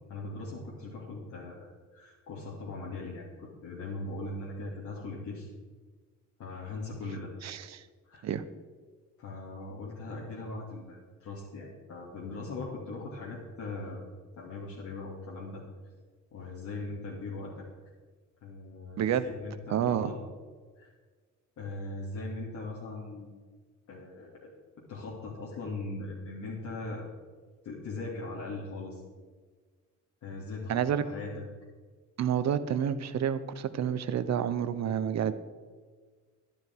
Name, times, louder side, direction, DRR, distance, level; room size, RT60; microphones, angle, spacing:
voice 1, 0.1-5.5 6.4-7.3 8.1-8.3 9.2-14.1 14.4-15.6 16.3-17.7 18.4-20.2 20.8-20.9 21.6-23.3 23.9-24.5 24.9-27.0 27.6-29.0 30.2-31.4, left 2 dB, 75° left, -6 dB, 2.6 m, -40 dB
voice 2, 7.4-7.8 8.2-8.4 19.0-19.3 19.7-20.1 30.7-31.0 32.2-35.3, right 9 dB, 60° right, 12 dB, 0.9 m, -29 dB
11.5 x 11.5 x 4.6 m, 1.5 s
cardioid pair, 90°, 30 cm